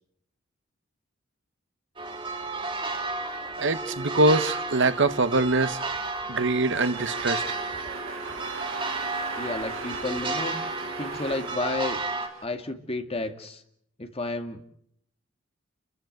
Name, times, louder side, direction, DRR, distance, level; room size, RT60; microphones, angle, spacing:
sound 1, 2.0-12.3, right 3 dB, 25° right, 3.3 m, -32 dB
voice 1, 3.6-5.8 6.3-7.4, right 2 dB, 65° right, 1.2 m, -23 dB
sound 2, 6.7-12.4, right 4 dB, 85° right, 2.5 m, -39 dB
voice 2, 9.4-10.6 11.0-12.0 12.4-13.6 14.0-14.6, left 2 dB, 30° left, 2.3 m, -31 dB
30.0 x 14.5 x 9.4 m
head